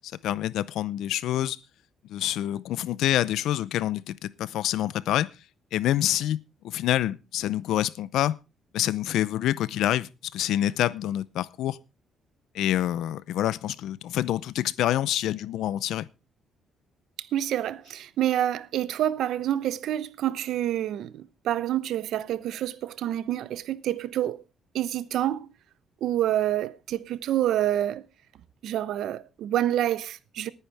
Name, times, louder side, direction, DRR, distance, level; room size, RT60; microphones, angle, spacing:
voice 1, 0.2-1.6 2.1-5.3 5.7-6.4 6.6-8.4 8.7-11.8 12.5-16.1, left 12 dB, 80° left, 0.6 m, -27 dB
voice 2, 17.2-24.4 24.7-25.5 26.0-28.0 28.6-30.5, right 12 dB, 70° right, 0.8 m, -27 dB
19.5 x 10.0 x 3.5 m
cardioid pair, 155°, 0 cm